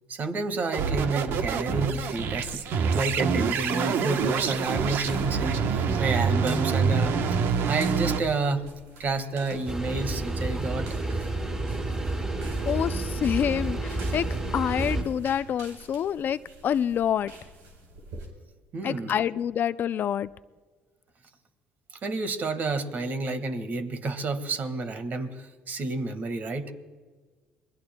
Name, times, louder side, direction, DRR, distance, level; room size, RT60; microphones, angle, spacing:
voice 1, 0.1-7.1 7.7-8.6 9.0-10.9 18.7-19.1 22.0-26.7, right 3 dB, 45° right, 9 dB, 1.7 m, -30 dB
sound 1, 0.7-8.2, right 6 dB, 65° right, 1.0 m, -26 dB
sound 2, 1.8-18.3, right 2 dB, 90° right, 4.1 m, -48 dB
sound 3, 9.7-15.0, right 2 dB, 20° right, 5.3 m, -30 dB
voice 2, 12.7-14.3 14.5-17.3 18.8-20.3, left 9 dB, 50° left, 15 dB, 0.4 m, -27 dB
26.5 x 21.5 x 2.3 m, 1.4 s
supercardioid pair, 90°, 4 cm